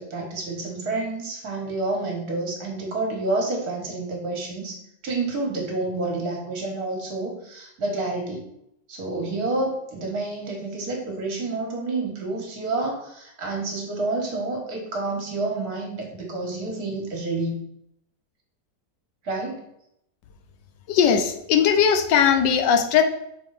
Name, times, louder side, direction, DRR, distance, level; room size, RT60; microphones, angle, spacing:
voice 1, 0.0-8.5 8.9-17.6 19.2-19.6, right 2 dB, 60° right, 0 dB, 1.9 m, -29 dB
voice 2, 20.9-23.0, left 8 dB, 85° left, 6 dB, 1.4 m, -19 dB
5.5 x 3.8 x 4.7 m, 0.77 s
omnidirectional pair, 1.8 m